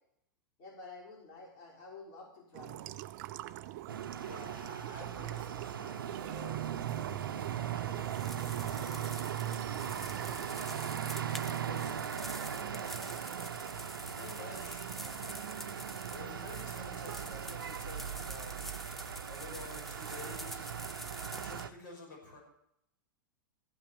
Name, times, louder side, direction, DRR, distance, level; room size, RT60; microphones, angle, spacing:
voice 1, 0.6-2.9, left 3 dB, 50° left, -4 dB, 5.6 m, -50 dB
sound 1, 2.5-13.0, right 15 dB, 55° right, 0.6 m, -43 dB
sound 2, 3.9-21.7, right 8 dB, 85° right, 0.8 m, -39 dB
voice 2, 4.2-11.0 11.5-13.6 14.1-18.7 19.3-22.4, left 2 dB, 70° left, 1 dB, 5.8 m, -51 dB
sound 3, 8.0-21.6, equal, ahead, 0.8 m, -48 dB
15.0 x 5.8 x 8.5 m, 0.76 s
hypercardioid pair, 105°, 11 cm